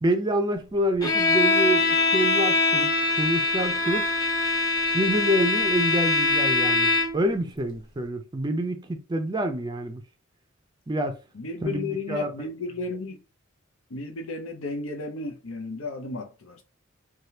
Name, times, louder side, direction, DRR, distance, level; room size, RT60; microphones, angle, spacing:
voice 1, 0.0-2.9 3.2-4.1 4.9-10.0 10.9-11.2 11.6-12.5, right 1 dB, 20° right, 0.4 m, -27 dB
Bowed string instrument, 1.0-7.3, left 3 dB, 20° left, 0.7 m, -23 dB
voice 2, 11.3-13.2 13.9-16.6, left 3 dB, 85° left, 0.7 m, -33 dB
3.3 x 2.3 x 2.8 m
head